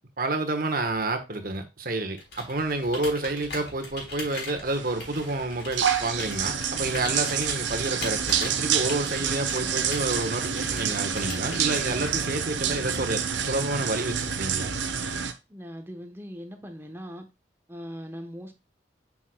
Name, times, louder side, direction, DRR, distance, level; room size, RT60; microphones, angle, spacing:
voice 1, 0.2-14.8, right 2 dB, 50° right, 1.2 m, -29 dB
Computer keyboard, 2.1-12.4, left 2 dB, 65° left, 3.6 m, -41 dB
sound 1, 4.7-15.3, right 7 dB, 80° right, 0.8 m, -28 dB
voice 2, 15.5-17.3 17.7-18.5, equal, 10° right, 1.0 m, -40 dB
7.1 x 5.9 x 2.3 m
head